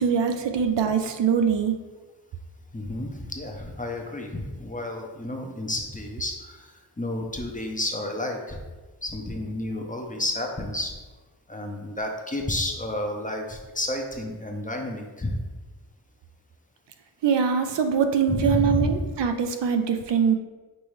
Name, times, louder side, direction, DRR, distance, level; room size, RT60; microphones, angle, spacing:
voice 1, 0.0-1.7 17.2-20.3, right 7 dB, 70° right, 7 dB, 0.5 m, -23 dB
voice 2, 2.7-6.7 7.0-8.6 9.0-10.9 11.5-15.4 18.3-19.0, left 1 dB, 20° left, 2 dB, 0.6 m, -30 dB
5.3 x 3.0 x 3.1 m, 1.3 s
wide cardioid pair, 60°, 45 cm